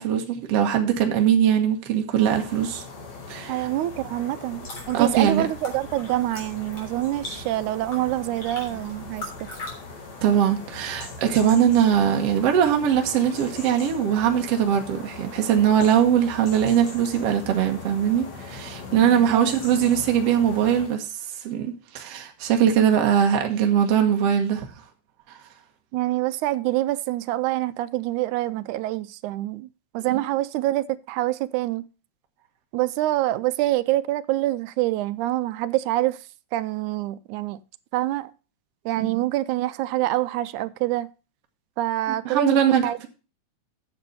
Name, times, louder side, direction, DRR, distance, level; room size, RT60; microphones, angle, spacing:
voice 1, 0.0-2.8 3.3-3.7 4.9-5.5 10.2-21.1 21.4-24.7 39.1-39.2 42.1-42.9, right 9 dB, 60° right, 2.1 m, -21 dB
sound 1, 2.1-21.0, left 3 dB, 60° left, 3.5 m, -40 dB
voice 2, 3.5-9.5 19.3-19.6 25.9-29.7 29.9-31.8 32.7-36.2 36.5-37.6 37.9-38.3 38.9-41.1 41.8-42.6 42.8-43.1, right 16 dB, 80° right, 2.0 m, -26 dB
sound 2, 4.4-9.7, left 2 dB, 40° left, 4.2 m, -41 dB
9.5 x 7.0 x 5.4 m
omnidirectional pair, 3.5 m